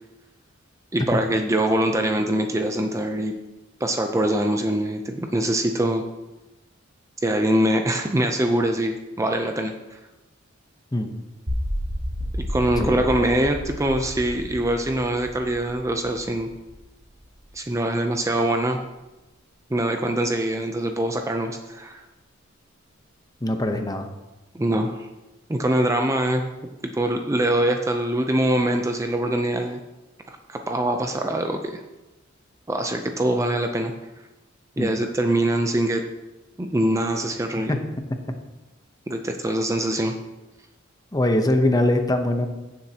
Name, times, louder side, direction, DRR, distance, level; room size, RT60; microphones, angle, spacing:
voice 1, 0.9-3.3 3.8-6.0 7.2-10.0 12.4-16.5 17.5-18.8 19.7-22.0 24.5-25.1 25.5-26.4 26.8-29.8 30.3-31.8 32.7-33.9 34.8-36.0 36.6-37.7 39.1-40.1, right 1 dB, 15° right, 4 dB, 0.5 m, -23 dB
sound 1, 11.5-17.5, equal, 85° right, 2.2 m, -32 dB
voice 2, 23.4-24.1 34.8-35.0 37.7-37.8 41.1-42.5, left 1 dB, 20° left, 6 dB, 0.8 m, -22 dB
15.5 x 7.3 x 2.9 m, 1.1 s
head